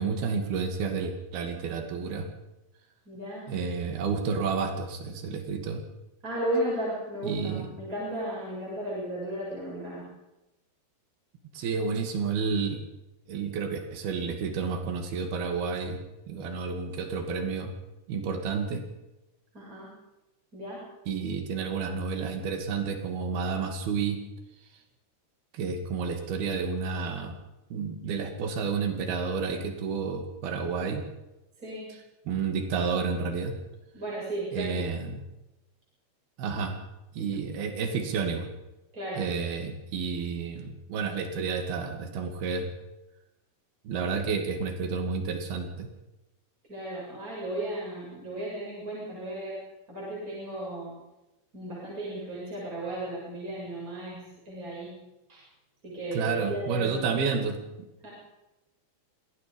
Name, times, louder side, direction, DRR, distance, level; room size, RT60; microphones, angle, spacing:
voice 1, 0.0-2.3 3.5-5.8 7.2-7.7 11.5-12.8 13.3-16.0 16.3-17.7 18.1-18.8 21.1-24.2 25.5-27.4 27.7-31.0 32.3-33.5 34.5-35.2 36.4-36.8 37.1-38.5 39.2-42.7 43.9-45.9 56.1-57.6, right 5 dB, 75° right, 5 dB, 4.2 m, -30 dB
voice 2, 3.0-3.5 6.2-10.0 19.5-19.9 20.5-20.8 31.6-31.9 33.9-34.9 38.9-39.2 46.7-49.6 49.9-50.9 51.5-54.2 54.4-54.9 55.3-55.4 55.8-57.1 58.0-58.1, right 1 dB, 20° right, -6 dB, 8.0 m, -34 dB
25.5 x 19.0 x 5.4 m, 0.98 s
omnidirectional pair, 4.5 m